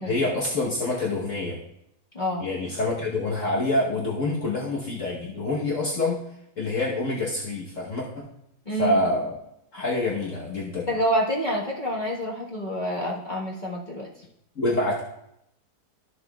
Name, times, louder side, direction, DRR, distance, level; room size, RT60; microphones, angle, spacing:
voice 1, 0.0-1.6 2.4-6.2 6.6-8.3 8.7-9.3 9.7-10.9 14.6-15.0, left 2 dB, 55° left, -4 dB, 1.5 m, -26 dB
voice 2, 2.1-2.5 8.7-9.0 10.9-14.1, equal, 30° left, -5 dB, 1.4 m, -27 dB
13.0 x 6.7 x 2.3 m, 0.77 s
omnidirectional pair, 1.7 m